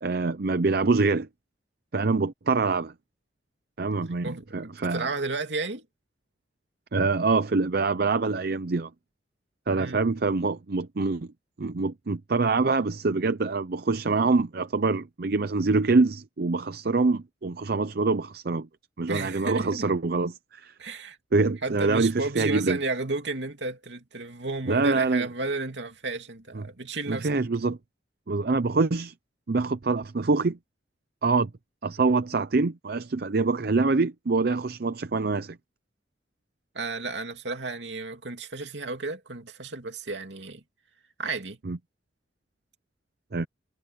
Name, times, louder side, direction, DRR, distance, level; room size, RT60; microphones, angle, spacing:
voice 1, 0.0-1.3 1.9-2.9 3.8-5.1 6.9-8.9 9.7-11.3 11.6-18.7 19.0-20.7 21.3-22.8 24.7-25.3 26.6-26.7 27.1-27.8 28.3-29.1 29.5-30.6 31.2-31.5 31.8-35.6 41.7-41.8 43.3-43.5, right 3 dB, 55° right, 0.6 m, -25 dB
voice 2, 4.2-5.8 9.8-10.0 19.1-19.8 20.8-21.2 21.6-27.3 36.7-40.6 41.2-41.6, right 3 dB, 75° right, 2.7 m, -33 dB
head